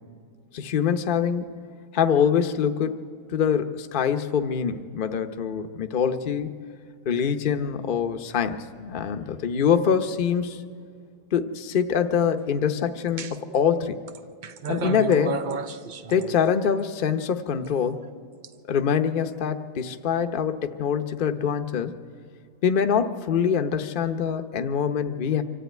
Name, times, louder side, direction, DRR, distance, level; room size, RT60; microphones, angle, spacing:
voice 1, 0.5-1.6 1.9-3.0 3.3-6.5 7.1-10.7 11.3-14.0 14.7-15.4 16.1-18.0 18.7-22.0 22.6-25.4, left 7 dB, 40° left, 7 dB, 0.8 m, -24 dB
sound 1, 13.2-13.6 14.1-16.8 17.6-18.5, right 4 dB, 70° right, 0.4 m, -33 dB
24.5 x 14.0 x 9.2 m, 2.4 s
omnidirectional pair, 1.7 m